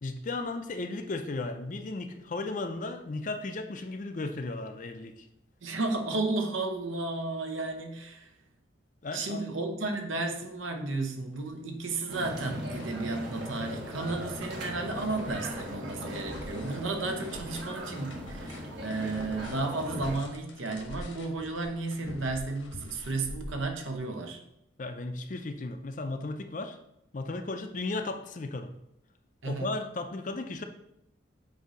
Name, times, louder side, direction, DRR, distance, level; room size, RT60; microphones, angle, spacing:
voice 1, 0.0-5.3 9.0-9.4 24.8-26.8 27.1-28.7 29.4-30.6, left 2 dB, 40° left, 7 dB, 0.5 m, -35 dB
voice 2, 5.6-8.3 9.1-24.4 29.4-29.7, right 3 dB, 80° right, 4 dB, 0.9 m, -33 dB
sound 1, 10.9-11.0 11.3-12.1 12.3-24.0, left 1 dB, 80° left, 1.1 m, -47 dB
sound 2, 12.1-20.2, equal, 60° right, 1.3 m, -39 dB
8.0 x 2.7 x 5.0 m, 0.81 s
head